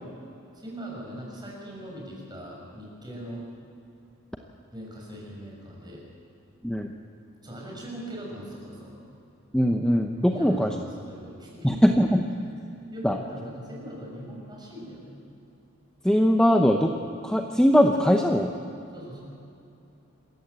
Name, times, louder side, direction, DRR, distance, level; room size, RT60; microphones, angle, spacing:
voice 1, 0.5-3.4 4.7-6.0 7.4-9.0 10.3-11.8 12.9-15.1 18.9-19.2, equal, 20° right, -2 dB, 6.3 m, -40 dB
voice 2, 9.5-10.7 11.6-12.2 13.0-13.2 16.0-16.9 17.2-18.5, equal, 5° left, 3 dB, 0.8 m, -21 dB
27.0 x 14.5 x 8.1 m, 2.6 s
head